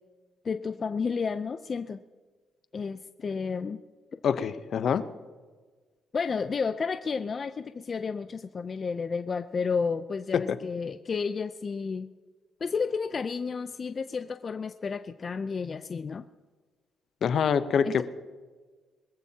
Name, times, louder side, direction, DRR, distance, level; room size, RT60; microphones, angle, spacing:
voice 1, 0.4-2.0 2.7-3.8 6.1-12.1 12.6-16.2 17.8-18.0, left 5 dB, 40° left, 9 dB, 0.5 m, -31 dB
voice 2, 4.2-5.0 10.3-10.6 17.2-18.0, left 7 dB, 60° left, 11 dB, 0.8 m, -25 dB
23.5 x 14.5 x 2.9 m, 1.4 s
cardioid pair, 90°, 0 cm